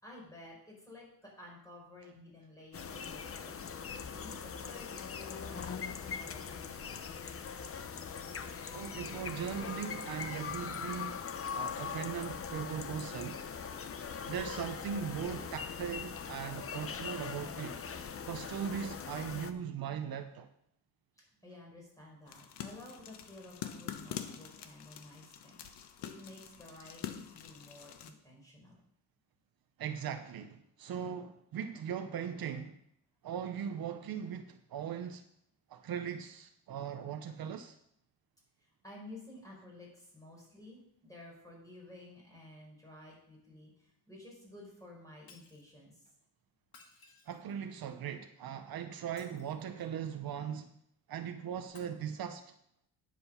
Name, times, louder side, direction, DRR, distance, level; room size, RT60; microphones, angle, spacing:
voice 1, 0.0-3.6 4.1-7.3 21.4-25.6 26.0-28.8 38.6-46.0, left 1 dB, 10° left, 4.9 m, -53 dB
sound 1, 2.7-19.5, left 6 dB, 35° left, 0.7 m, -41 dB
voice 2, 8.7-11.2 11.5-13.4 14.2-17.8 18.2-20.5 29.8-32.8 33.2-35.2 35.7-37.8 47.3-50.7 51.1-52.4, right 8 dB, 65° right, 0.8 m, -39 dB
sound 2, 22.3-28.1, left 9 dB, 90° left, 1.1 m, -45 dB
Shatter, 45.3-45.7 46.6-47.7 49.0-49.9 51.7-51.8, left 4 dB, 65° left, 1.9 m, -60 dB
9.8 x 7.7 x 5.7 m
cardioid pair, 145°, 39 cm